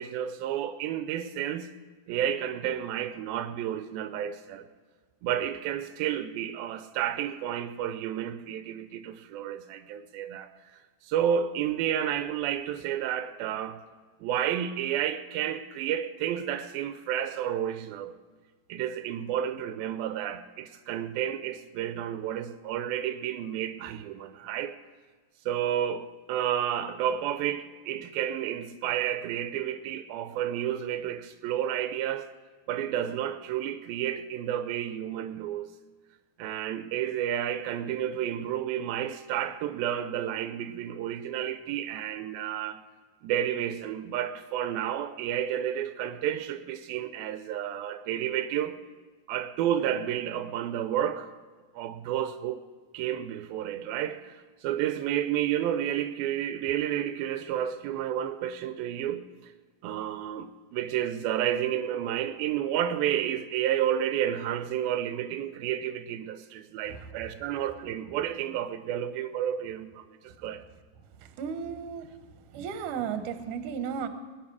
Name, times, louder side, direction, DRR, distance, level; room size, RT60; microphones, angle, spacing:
voice 1, 0.0-1.7 2.1-4.7 5.2-13.8 14.2-18.1 18.7-24.7 25.5-32.3 32.7-35.7 36.4-42.8 43.2-48.8 49.3-51.3 51.7-52.6 52.9-59.5 59.8-70.6, right 10 dB, 85° right, 2.5 m, -31 dB
voice 2, 66.8-67.9 71.2-72.1 72.5-74.1, right 7 dB, 70° right, 2.4 m, -35 dB
20.5 x 9.8 x 4.7 m
omnidirectional pair, 4.1 m